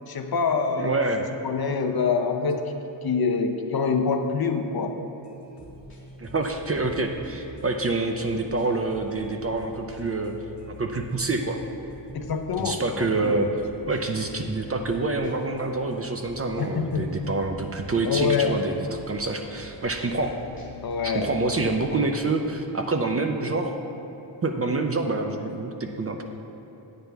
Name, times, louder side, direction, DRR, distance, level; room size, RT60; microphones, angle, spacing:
voice 1, 0.1-1.0 1.4-2.7 3.0-5.0 12.1-13.4 16.6-17.1 18.0-18.6 20.8-21.6, left 5 dB, 50° left, 5 dB, 0.7 m, -26 dB
voice 2, 0.8-1.2 6.2-10.4 10.7-11.6 12.6-13.5 13.9-18.8 19.1-20.4 21.0-23.7 24.4-26.2, right 3 dB, 30° right, 4 dB, 0.5 m, -27 dB
sound 1, 5.2-22.2, left 1 dB, 25° left, 2.2 m, -46 dB
9.2 x 8.9 x 3.4 m, 3.0 s
wide cardioid pair, 130°, 47 cm